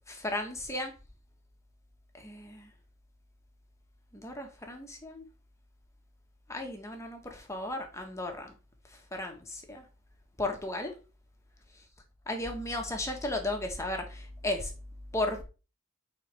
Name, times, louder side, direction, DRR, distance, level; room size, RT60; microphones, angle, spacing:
voice 1, 0.1-0.9 2.2-2.7 4.1-5.2 6.5-8.5 9.1-9.8 10.4-10.9 12.3-14.7 15.1-15.4, left 1 dB, 15° left, 3 dB, 1.4 m, -35 dB
9.0 x 4.2 x 3.4 m, 0.32 s
head